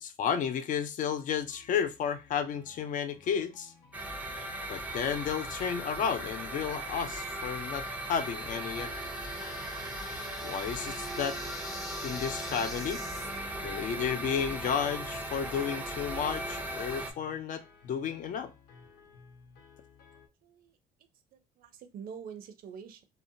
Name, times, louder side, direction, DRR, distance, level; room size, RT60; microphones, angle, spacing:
voice 1, 0.0-3.7 4.7-8.9 10.4-11.4 12.0-13.0 13.6-18.5, left 7 dB, 50° left, 0.4 m, -32 dB
sound 1, 1.3-20.3, left 5 dB, 85° left, 0.7 m, -57 dB
sound 2, 3.9-17.1, right 1 dB, 10° right, 0.5 m, -38 dB
sound 3, 7.5-13.4, left 2 dB, 20° left, 0.8 m, -46 dB
voice 2, 20.1-20.8 21.3-23.0, right 7 dB, 60° right, 0.5 m, -46 dB
2.7 x 2.1 x 2.6 m
cardioid pair, 110°, 17 cm